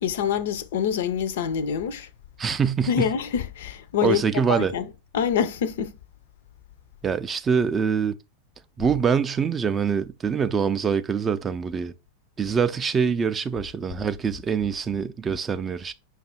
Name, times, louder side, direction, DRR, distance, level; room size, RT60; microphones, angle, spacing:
voice 1, 0.0-2.1 2.9-4.2 4.5-4.9 5.1-5.9, left 8 dB, 55° left, 0.4 m, -25 dB
voice 2, 2.4-3.1 4.0-4.7 7.0-8.1 8.8-11.9 12.4-15.9, right 6 dB, 20° right, 0.3 m, -24 dB
5.2 x 2.4 x 4.1 m
figure-of-eight pair, 90°, 0 cm